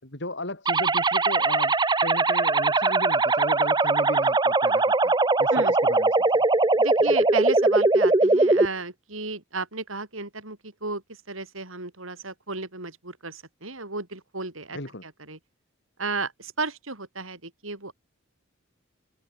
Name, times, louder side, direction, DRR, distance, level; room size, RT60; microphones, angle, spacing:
voice 1, 0.0-5.1 5.4-6.4 7.0-7.1 14.7-15.0, left 2 dB, 60° left, 5.7 m, -35 dB
sound 1, 0.7-8.7, right 3 dB, 20° right, 0.8 m, -21 dB
voice 2, 6.8-15.4 16.0-17.9, right 3 dB, 80° right, 7.1 m, -34 dB
head